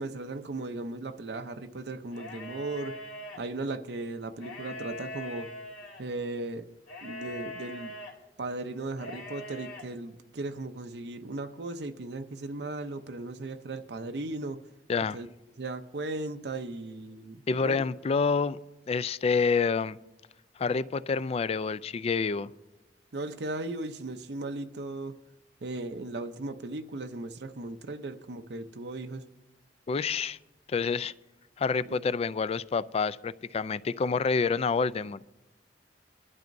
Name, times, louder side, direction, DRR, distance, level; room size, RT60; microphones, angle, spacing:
voice 1, 0.0-3.0 3.4-5.5 6.0-6.7 7.0-7.9 8.4-14.6 15.1-15.3 15.6-17.8 23.1-25.1 25.6-29.2 31.9-32.0, right 2 dB, 70° right, 0.6 m, -37 dB
sound 1, 2.1-3.4 4.3-6.0 6.9-8.1 8.9-9.8, left 1 dB, 90° left, 3.0 m, -41 dB
voice 2, 17.5-18.6 18.9-20.0 20.6-22.5 29.9-30.4 30.7-31.1 31.6-35.2, left 5 dB, 35° left, 0.3 m, -28 dB
22.5 x 12.0 x 2.6 m
head